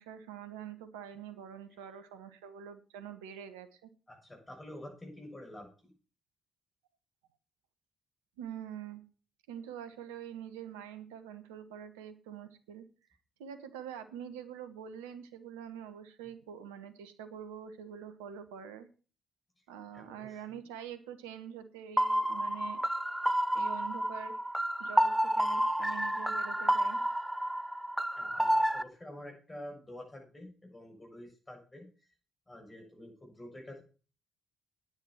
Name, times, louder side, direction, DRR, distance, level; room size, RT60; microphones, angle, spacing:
voice 1, 0.0-3.9 8.4-9.0 9.5-12.8 13.4-18.9 19.7-22.8 23.5-24.4 24.8-27.0, right 8 dB, 75° right, 10 dB, 1.2 m, -45 dB
voice 2, 4.1-5.7 19.9-20.6 28.2-31.9 32.5-33.8, left 1 dB, 20° left, 1 dB, 7.4 m, -48 dB
sound 1, 22.0-28.8, equal, 5° right, 0.9 m, -30 dB
9.7 x 9.6 x 5.9 m, 0.38 s
figure-of-eight pair, 45°, 0 cm